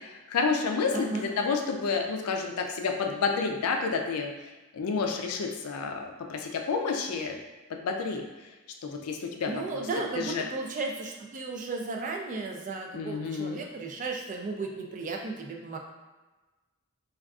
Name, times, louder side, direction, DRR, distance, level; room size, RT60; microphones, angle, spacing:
voice 1, 0.3-4.3 4.7-7.3 7.7-8.2 8.8-9.5 10.2-10.4 12.9-13.6, left 5 dB, 85° left, 3 dB, 0.4 m, -29 dB
voice 2, 0.9-1.3 9.5-15.8, right 3 dB, 35° right, 1 dB, 0.3 m, -34 dB
3.5 x 2.3 x 2.3 m, 1.2 s
head